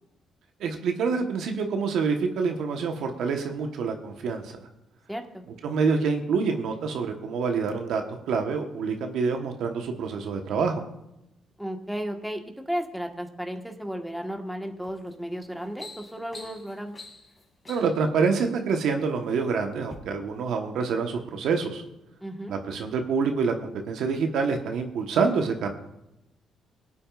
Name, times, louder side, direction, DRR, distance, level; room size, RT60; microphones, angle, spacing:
voice 1, 0.6-4.6 5.6-10.8 17.7-21.8 22.5-25.7, right 5 dB, 80° right, 4 dB, 1.2 m, -27 dB
voice 2, 5.1-5.4 11.6-16.9 22.2-22.6, equal, ahead, 3 dB, 1.5 m, -34 dB
sound 1, 14.8-15.1 15.5-18.1 18.9-19.4 19.8-20.0, left 3 dB, 30° left, 2.7 m, -46 dB
23.5 x 8.6 x 2.5 m, 0.90 s
cardioid pair, 90°, 0 cm